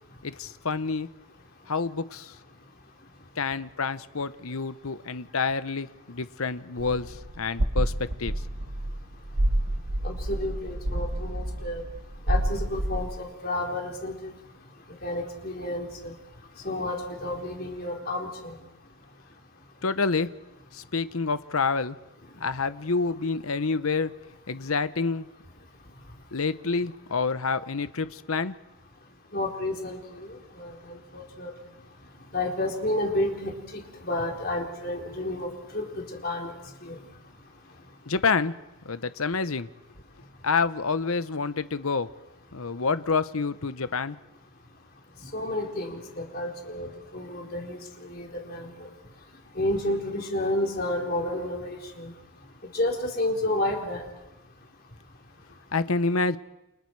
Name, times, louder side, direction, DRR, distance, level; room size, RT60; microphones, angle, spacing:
voice 1, 0.2-1.1 1.7-2.3 3.4-8.3 19.8-20.3 20.7-22.0 22.4-24.1 24.5-25.3 26.3-28.6 38.1-38.5 38.8-39.7 40.4-42.1 42.5-44.2 55.7-56.4, left 4 dB, 70° left, 13 dB, 1.0 m, -28 dB
sound 1, 6.8-13.1, right 1 dB, 80° right, 1.5 m, -29 dB
voice 2, 10.0-11.8 12.3-14.3 15.0-16.1 16.6-18.6 29.3-31.5 32.3-35.5 35.7-36.5 36.8-37.0 45.3-48.9 49.6-52.1 52.7-54.0, left 1 dB, 40° left, 1 dB, 4.3 m, -31 dB
29.5 x 28.0 x 4.8 m, 0.94 s
head